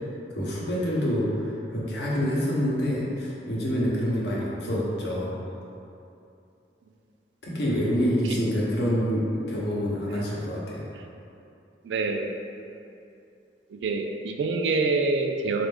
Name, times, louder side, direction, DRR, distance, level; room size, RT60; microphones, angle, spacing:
voice 1, 0.3-5.4 7.4-10.9, equal, 65° left, -5 dB, 0.8 m, -27 dB
voice 2, 11.8-12.3 13.7-15.7, right 3 dB, 70° right, 4 dB, 0.3 m, -26 dB
4.1 x 2.4 x 3.4 m, 2.7 s
head